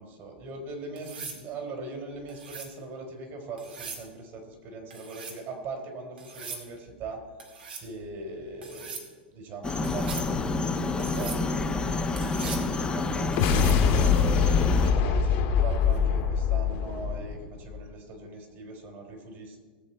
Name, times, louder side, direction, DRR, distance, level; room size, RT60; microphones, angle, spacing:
voice 1, 0.0-7.2 7.8-9.0 9.3-13.3 13.9-19.6, right 3 dB, 45° right, 3 dB, 3.7 m, -40 dB
Kitchen Knife Sharpening, 1.0-1.4 2.3-2.7 3.6-4.1 4.9-5.4 6.2-6.7 7.4-7.9 8.6-9.1 9.8-10.3 11.0-11.4 12.2-12.7 13.3-13.8 15.8-16.0, right 5 dB, 75° right, 2.1 m, -41 dB
sound 1, 9.6-14.9, left 3 dB, 15° left, 1.2 m, -28 dB
sound 2, 13.2-17.8, left 6 dB, 50° left, 1.8 m, -24 dB
19.5 x 7.6 x 4.5 m, 1.5 s
hypercardioid pair, 100°, 5 cm